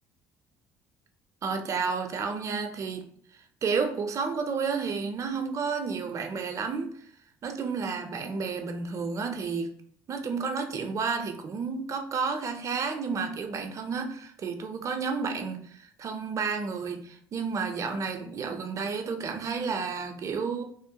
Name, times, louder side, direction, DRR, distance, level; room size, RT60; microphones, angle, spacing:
voice 1, 1.4-3.1 3.6-6.9 7.4-9.7 10.1-20.6, right 5 dB, 40° right, 5 dB, 0.5 m, -31 dB
3.0 x 2.0 x 2.8 m, 0.63 s
supercardioid pair, 80°, 8 cm